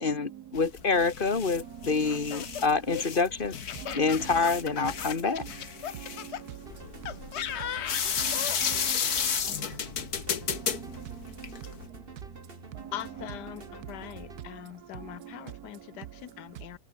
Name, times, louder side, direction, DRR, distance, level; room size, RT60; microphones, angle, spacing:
voice 1, 0.0-3.5 3.9-5.5, left 4 dB, 35° left, 1.5 m, -27 dB
sound 1, 0.5-11.9, left 7 dB, 65° left, 2.1 m, -33 dB
Laughter, 2.0-6.4 7.1-8.6, left 9 dB, 50° left, 0.9 m, -37 dB
voice 2, 5.8-7.5 8.2-9.2 10.5-12.0 12.7-12.9 13.7-16.1 16.4-16.5, right 12 dB, 70° right, 1.3 m, -45 dB
sound 2, 6.6-14.4, right 3 dB, 35° right, 2.8 m, -47 dB
voice 3, 12.9-16.8, left 12 dB, 80° left, 1.4 m, -42 dB
omnidirectional pair, 1.8 m